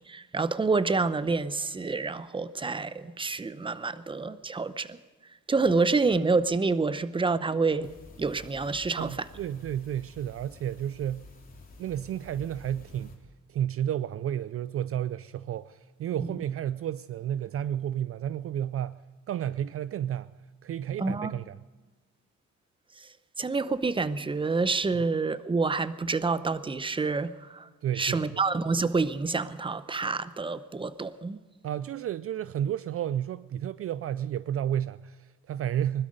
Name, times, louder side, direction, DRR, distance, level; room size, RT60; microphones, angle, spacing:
voice 1, 0.0-5.0 5.5-7.9 8.2-9.3 21.0-21.3 23.0-23.1 23.4-27.7 27.9-31.4, right 4 dB, 15° right, 0.7 m, -28 dB
sound 1, 7.8-13.2, left 2 dB, 30° left, 3.4 m, -50 dB
voice 2, 9.0-11.3 11.8-13.1 13.5-19.0 19.3-20.3 20.6-21.6 24.9-25.0 27.8-28.4 31.6-36.1, right 10 dB, 50° right, 0.4 m, -32 dB
20.5 x 12.5 x 5.1 m
cardioid pair, 90°, 30 cm